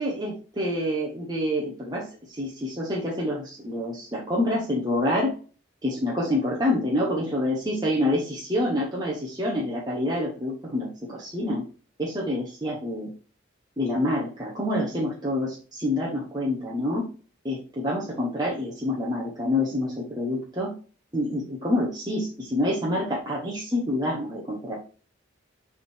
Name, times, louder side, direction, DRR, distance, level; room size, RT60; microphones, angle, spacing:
voice 1, 0.0-5.3 5.8-11.6 12.0-13.1 13.8-17.1 17.4-20.7 21.1-24.8, left 1 dB, 20° right, -4 dB, 1.1 m, -27 dB
7.0 x 3.7 x 4.6 m, 0.37 s
head